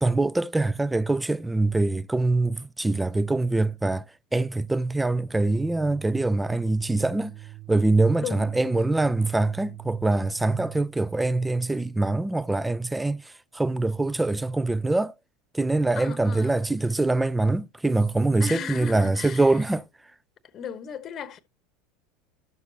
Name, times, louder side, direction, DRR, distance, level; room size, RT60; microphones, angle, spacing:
voice 1, 0.0-4.0 4.3-7.3 7.7-13.2 13.5-15.1 15.5-19.8, right 2 dB, 10° right, 0.4 m, -24 dB
sound 1, 5.4-11.0, right 10 dB, 55° right, 0.9 m, -42 dB
voice 2, 8.2-8.9 16.0-16.5 18.4-19.6 20.5-21.4, left 6 dB, 40° left, 0.9 m, -36 dB
12.5 x 6.7 x 2.9 m
hypercardioid pair, 75°, 0 cm